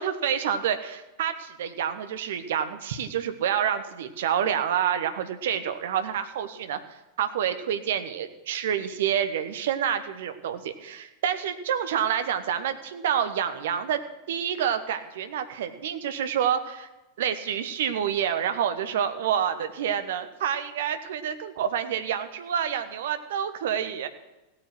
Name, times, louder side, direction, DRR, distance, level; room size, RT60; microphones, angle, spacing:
voice 1, 0.0-6.8 7.2-14.0 14.3-16.9 17.2-24.1, right 9 dB, 60° right, 9 dB, 1.2 m, -28 dB
16.5 x 8.9 x 6.1 m, 1.0 s
figure-of-eight pair, 90°, 0 cm